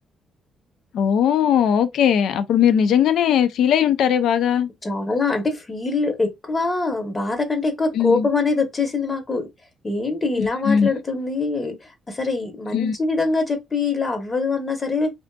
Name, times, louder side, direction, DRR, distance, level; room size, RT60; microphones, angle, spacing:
voice 1, 0.9-4.7 7.9-8.3 10.4-10.9 12.7-12.9, left 8 dB, 75° left, 0.3 m, -19 dB
voice 2, 4.8-9.5 9.8-11.7 12.1-15.1, left 3 dB, 30° left, 0.8 m, -23 dB
2.5 x 2.5 x 2.2 m
cardioid pair, 90°, 0 cm